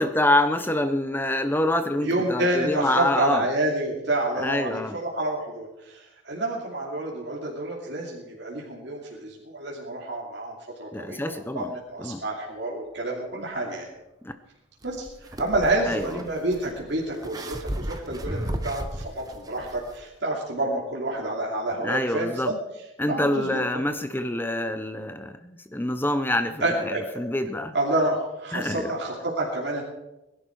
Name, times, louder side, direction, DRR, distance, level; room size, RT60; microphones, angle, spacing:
voice 1, 0.0-3.5 4.4-5.0 10.9-11.7 12.0-12.2 14.2-14.3 15.9-16.1 21.8-22.5 23.0-27.7 28.5-28.9, left 1 dB, 10° left, 10 dB, 0.7 m, -26 dB
voice 2, 2.0-13.9 14.8-22.6 23.1-23.6 26.6-27.2 27.7-29.8, right 1 dB, 60° right, -3 dB, 2.7 m, -28 dB
sound 1, 14.8-20.0, right 1 dB, 20° right, 1.1 m, -35 dB
21.0 x 11.5 x 4.7 m, 0.95 s
head